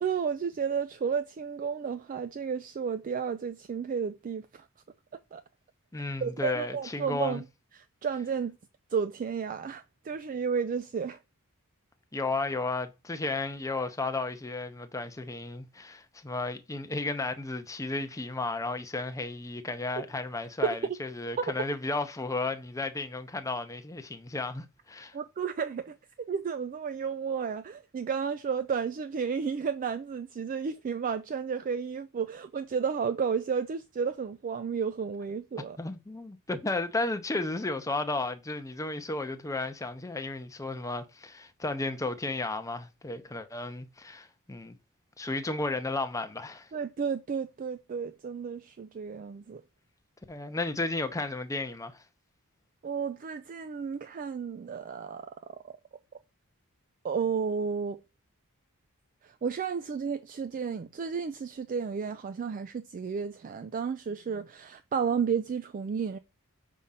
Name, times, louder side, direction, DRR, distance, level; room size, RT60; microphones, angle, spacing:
voice 1, 0.0-4.6 5.1-5.4 6.2-7.4 7.8-8.5 8.9-11.2 20.0-20.1 20.6-20.8 21.4-21.5 25.1-26.0 26.3-35.8 46.7-49.6 52.8-55.3 55.6-55.7 57.0-58.0 59.2-66.2, right 6 dB, 40° right, 0.3 m, -32 dB
voice 2, 5.9-7.4 12.1-25.1 35.8-44.8 45.2-46.7 50.3-52.0, left 2 dB, 15° left, 0.6 m, -33 dB
5.3 x 3.7 x 5.6 m
head